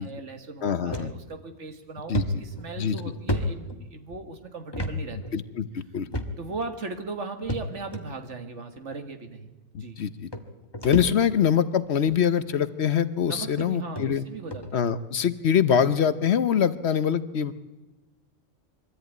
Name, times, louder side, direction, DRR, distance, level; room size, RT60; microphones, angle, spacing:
voice 1, 0.0-5.2 6.4-10.0 13.3-14.9 15.2-15.3, right 4 dB, 65° right, 6 dB, 2.0 m, -38 dB
voice 2, 0.6-1.1 2.1-2.2 2.8-3.0 5.3-6.1 9.7-10.3 10.8-14.3 14.7-17.5, left 8 dB, 60° left, 14 dB, 1.1 m, -24 dB
sound 1, 0.9-1.1 1.6-1.7 2.1-4.2 4.7-5.0 5.2-5.4 6.1-6.6 7.5-8.0 8.9-9.0 10.0-10.1 10.3-11.5 11.9-12.2 13.0-13.1 13.6-13.7 14.0-14.1 14.5-14.7, equal, 20° left, 1.4 m, -31 dB
23.0 x 14.0 x 9.3 m, 1.1 s
omnidirectional pair, 1.3 m